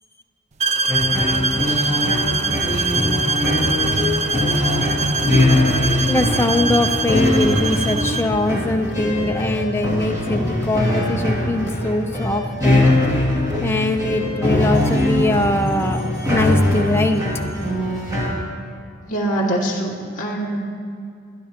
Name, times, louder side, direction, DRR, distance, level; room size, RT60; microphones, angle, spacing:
sound 1, 0.6-8.4, right 3 dB, 30° right, 0.4 m, -23 dB
sound 2, 0.9-18.3, left 1 dB, 15° right, 2.3 m, -21 dB
voice 1, 6.1-12.9 13.6-17.3, left 1 dB, 10° left, 5 dB, 0.6 m, -22 dB
voice 2, 19.1-20.6, right 1 dB, 35° left, -4 dB, 2.0 m, -23 dB
24.5 x 10.5 x 2.9 m, 2.3 s
head